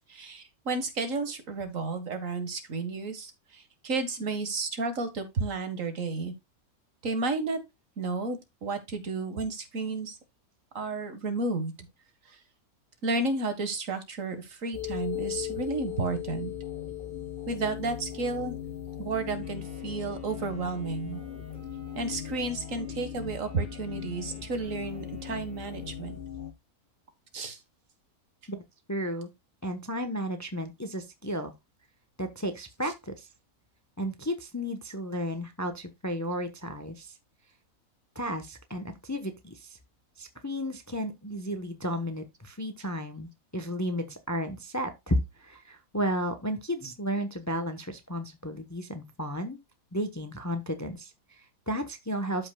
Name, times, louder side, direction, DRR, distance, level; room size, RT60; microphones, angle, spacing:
voice 1, 0.1-6.3 7.0-7.6 8.0-10.2 10.7-11.7 12.3-12.4 13.0-16.5 17.5-18.6 19.0-21.2 22.0-26.2 27.3-27.6 32.8-32.9, right 3 dB, 60° right, 2.0 m, -32 dB
sound 1, 14.7-26.5, left 10 dB, 40° left, 1.4 m, -38 dB
Wind instrument woodwind instrument, 19.4-26.4, right 1 dB, 75° right, 4.3 m, -53 dB
voice 2, 28.9-29.3 29.6-31.5 32.2-33.3 34.0-37.2 38.1-39.8 40.2-49.6 49.9-52.5, equal, 15° left, 0.9 m, -33 dB
13.0 x 5.5 x 2.3 m
omnidirectional pair, 1.6 m